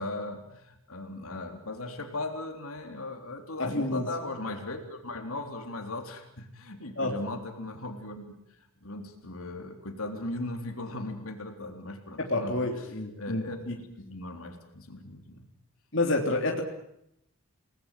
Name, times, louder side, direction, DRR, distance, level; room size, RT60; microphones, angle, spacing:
voice 1, 0.0-8.4 8.8-12.6 13.2-13.6 14.0-15.5, left 2 dB, 75° left, 4 dB, 3.7 m, -38 dB
voice 2, 3.6-4.0 7.0-7.1 12.2-13.7 15.9-16.6, left 2 dB, 55° left, 1 dB, 3.3 m, -29 dB
29.0 x 20.0 x 7.6 m, 0.79 s
head